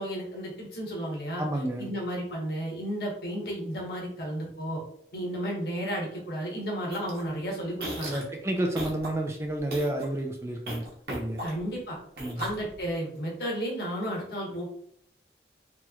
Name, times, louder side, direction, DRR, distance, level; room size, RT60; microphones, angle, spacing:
voice 1, 0.0-1.4 1.8-4.8 5.1-8.2 11.4-12.0 12.4-14.7, equal, 65° left, -1 dB, 1.0 m, -33 dB
voice 2, 1.4-1.9 8.1-11.4 12.2-12.4, right 1 dB, 15° right, 2 dB, 0.3 m, -30 dB
sound 1, 6.9-7.2 7.8-8.3 8.8-9.1 9.6-10.1 10.7-11.8 12.2-12.9, right 1 dB, 60° right, 0.8 m, -36 dB
3.0 x 3.0 x 2.3 m, 0.68 s
head